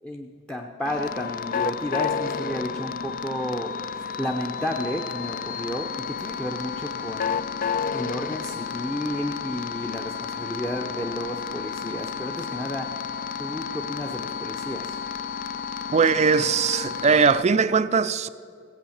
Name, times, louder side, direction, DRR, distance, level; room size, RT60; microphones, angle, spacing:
voice 1, 0.0-7.4 7.9-13.1 13.4-15.0, equal, 5° left, 0.7 m, -32 dB
sound 1, 0.9-17.4, left 6 dB, 40° left, 0.4 m, -31 dB
voice 2, 15.9-18.3, right 5 dB, 30° right, 0.4 m, -20 dB
15.5 x 8.5 x 7.2 m
head